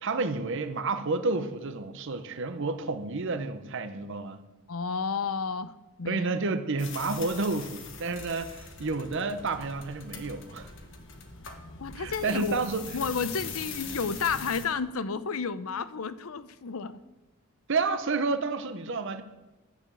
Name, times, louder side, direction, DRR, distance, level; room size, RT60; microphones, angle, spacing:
voice 1, 0.0-4.4 6.1-10.7 12.0-12.9 17.7-19.2, right 3 dB, 60° right, 9 dB, 0.8 m, -30 dB
voice 2, 4.7-6.2 11.8-12.7 12.9-17.0, left 5 dB, 80° left, 15 dB, 0.7 m, -31 dB
sound 1, 6.8-14.7, left 5 dB, 60° left, 1.6 m, -42 dB
10.5 x 6.9 x 8.6 m, 1.1 s
head